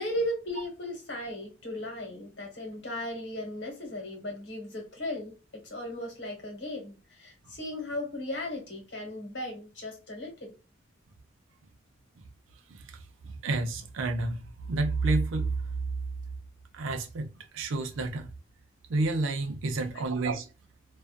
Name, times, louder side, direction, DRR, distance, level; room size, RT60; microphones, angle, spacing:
voice 1, 0.0-10.5 19.9-20.0, left 1 dB, 60° left, 1.2 m, -36 dB
voice 2, 12.7-15.6 16.7-18.3 18.9-20.5, right 3 dB, 75° right, 0.5 m, -30 dB
2.4 x 2.3 x 2.3 m
head